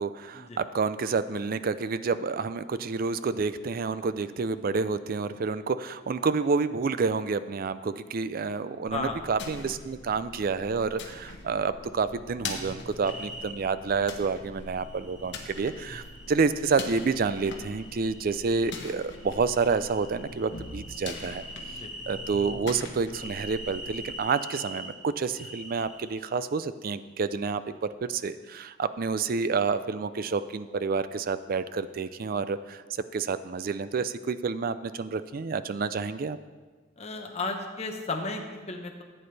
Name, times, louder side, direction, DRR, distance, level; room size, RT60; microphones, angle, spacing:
voice 1, 0.0-21.4 22.1-36.4, right 4 dB, 50° right, 13 dB, 0.4 m, -29 dB
sound 1, 8.9-24.2, left 3 dB, 65° left, 1.3 m, -42 dB
voice 2, 8.9-9.2 21.7-21.9 37.0-39.0, left 3 dB, 35° left, 3 dB, 1.1 m, -34 dB
sound 2, 13.0-13.5 14.7-16.3 16.9-18.8 19.1-22.6 23.1-24.9 25.4-26.2, equal, 5° right, 1.3 m, -44 dB
15.0 x 8.8 x 3.3 m, 1.4 s
head